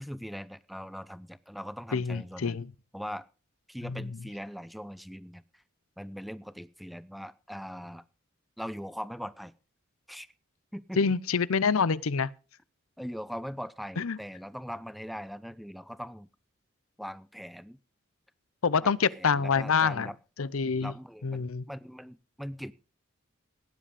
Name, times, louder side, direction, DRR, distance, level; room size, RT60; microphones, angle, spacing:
voice 1, 0.0-2.6 2.9-3.3 3.7-5.6 6.0-8.0 8.6-9.5 10.1-10.3 10.7-11.0 13.0-16.3 17.0-17.8 18.8-20.2 20.8-22.7, equal, ahead, 0.6 m, -41 dB
voice 2, 1.9-2.7 3.8-4.1 11.0-12.3 14.0-14.2 18.6-20.1 20.4-20.9 21.2-21.6, left 5 dB, 85° left, 0.7 m, -26 dB
16.5 x 10.0 x 5.0 m
head